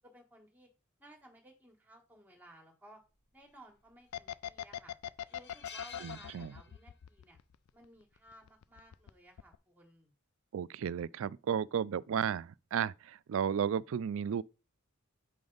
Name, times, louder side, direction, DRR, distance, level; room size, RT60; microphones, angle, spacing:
voice 1, 0.0-0.7 1.0-3.0 3.3-4.9 5.3-7.4 7.7-10.1, right 1 dB, 10° right, 1.4 m, -58 dB
sound 1, 3.9-4.4 4.8-4.9 5.3-7.1 7.4-7.6 8.8-9.1, left 6 dB, 50° left, 1.2 m, -51 dB
sound 2, 4.1-7.9 8.2-9.1 9.4-9.6, left 10 dB, 85° left, 0.4 m, -41 dB
voice 2, 6.0-6.5 10.5-14.4, right 8 dB, 65° right, 0.3 m, -33 dB
7.7 x 5.2 x 3.9 m
head